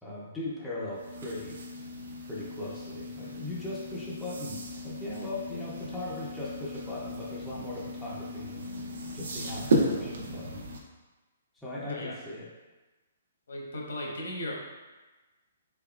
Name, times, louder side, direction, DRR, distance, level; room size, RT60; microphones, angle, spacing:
voice 1, 0.0-1.6 2.3-8.7 9.1-10.6 11.5-12.5, left 2 dB, 5° left, -8 dB, 0.4 m, -39 dB
sound 1, 0.9-10.8, right 1 dB, 60° right, 0.6 m, -35 dB
voice 2, 11.8-12.2 13.5-14.6, left 1 dB, 75° left, -1 dB, 0.9 m, -37 dB
4.1 x 3.5 x 2.3 m, 1.2 s
hypercardioid pair, 180°, 0 cm